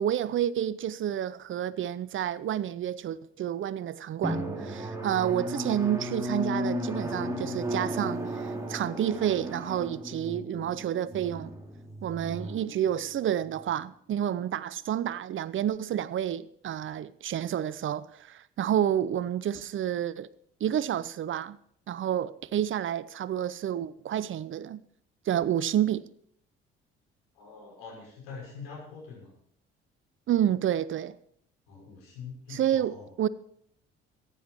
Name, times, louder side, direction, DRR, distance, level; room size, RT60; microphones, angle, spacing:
voice 1, 0.0-11.5 12.0-20.3 20.6-21.6 21.9-24.8 25.3-26.0 30.3-31.2 32.5-33.3, right 10 dB, 40° right, 0.6 m, -29 dB
Drum, 4.2-13.5, equal, 10° right, 2.8 m, -35 dB
voice 2, 27.3-29.3 31.7-33.1, left 5 dB, 75° left, 5.8 m, -44 dB
15.0 x 10.0 x 4.5 m
figure-of-eight pair, 50°, 30 cm